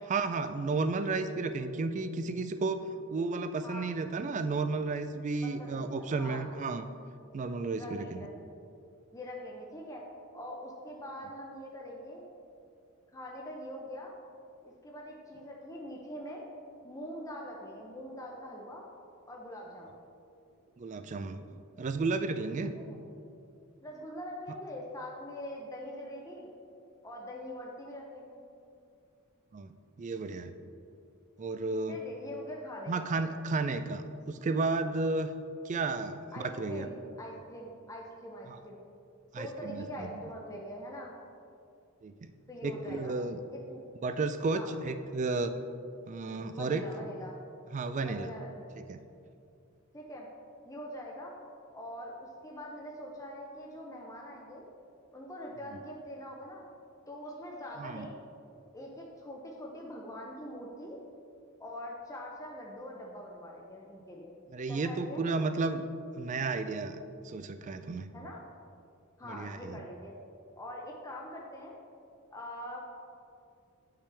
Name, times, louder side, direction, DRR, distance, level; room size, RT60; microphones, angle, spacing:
voice 1, 0.1-2.8 3.1-6.9 7.3-8.3 20.8-21.4 21.8-22.7 29.5-30.5 31.4-32.0 32.9-35.3 35.7-36.9 38.5-38.6 39.3-40.1 42.0-42.3 42.6-43.4 44.0-45.5 46.1-46.8 47.7-48.3 48.8-49.0 57.8-58.1 64.5-65.8 66.2-68.1 69.2-69.8, right 3 dB, 35° right, 10 dB, 0.3 m, -33 dB
voice 2, 5.4-6.5 7.7-8.3 9.1-10.0 10.3-12.2 13.1-14.1 14.8-16.4 16.8-18.9 19.3-20.0 22.7-23.0 23.8-26.5 27.0-28.4 31.9-33.1 36.3-38.8 39.4-41.1 42.5-43.1 43.5-43.8 44.5-44.7 46.5-47.3 48.0-48.7 49.9-50.3 50.7-51.3 51.7-54.7 55.1-56.6 57.1-58.2 58.7-61.0 61.6-64.3 64.7-65.2 68.1-68.4 69.2-70.1 70.6-71.8 72.3-72.8, equal, 15° left, -2 dB, 0.6 m, -43 dB
8.6 x 5.7 x 3.4 m, 2.6 s
head